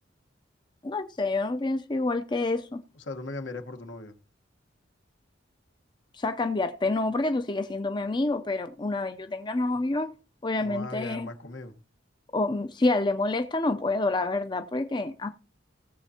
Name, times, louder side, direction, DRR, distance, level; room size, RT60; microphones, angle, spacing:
voice 1, 0.8-2.8 6.1-10.1 10.4-11.3 12.3-15.3, left 2 dB, 25° left, 0.5 m, -28 dB
voice 2, 2.9-4.2 10.6-11.8, left 2 dB, 80° left, 1.3 m, -38 dB
19.0 x 7.4 x 2.8 m
head